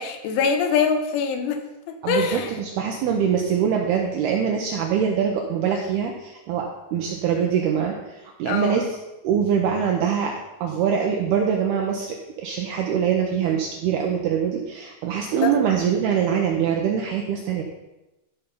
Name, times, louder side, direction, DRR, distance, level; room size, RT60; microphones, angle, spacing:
voice 1, 0.0-1.6 1.9-2.5 8.5-8.8 15.4-15.5, left 6 dB, 80° left, 7 dB, 3.2 m, -23 dB
voice 2, 2.0-9.0 9.2-10.3 10.6-12.1 12.4-17.6, right 7 dB, 90° right, 1 dB, 2.3 m, -23 dB
13.0 x 5.5 x 5.5 m, 0.98 s
omnidirectional pair, 5.7 m